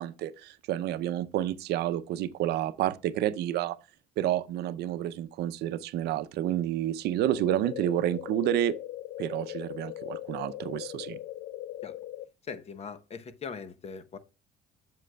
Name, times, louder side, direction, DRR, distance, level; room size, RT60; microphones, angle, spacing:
voice 1, 0.0-3.8 4.2-8.7 9.2-11.2, right 12 dB, 75° right, 0.6 m, -29 dB
sound 1, 7.2-12.3, left 14 dB, 65° left, 0.4 m, -40 dB
voice 2, 12.4-14.2, left 5 dB, 40° left, 0.9 m, -40 dB
7.6 x 7.6 x 2.2 m
cardioid pair, 110°, 17 cm